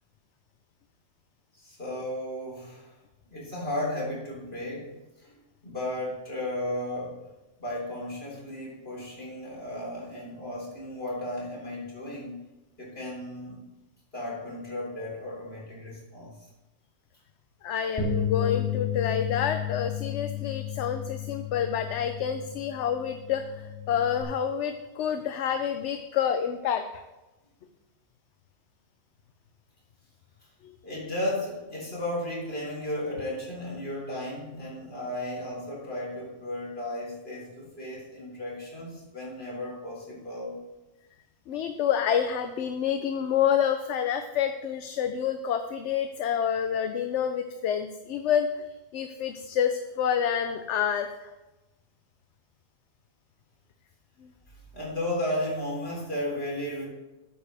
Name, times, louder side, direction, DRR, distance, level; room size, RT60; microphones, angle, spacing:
voice 1, 1.5-3.0 3.3-7.2 7.6-12.3 12.8-13.6 14.1-16.3 30.8-40.6 54.7-56.9, left 1 dB, 60° left, -4 dB, 3.9 m, -34 dB
voice 2, 17.6-27.0 30.6-30.8 41.5-51.3, left 8 dB, 80° left, 8 dB, 0.9 m, -28 dB
Bass guitar, 18.0-24.2, left 9 dB, 25° left, 2.1 m, -32 dB
13.5 x 8.9 x 3.4 m, 1.1 s
omnidirectional pair, 1.2 m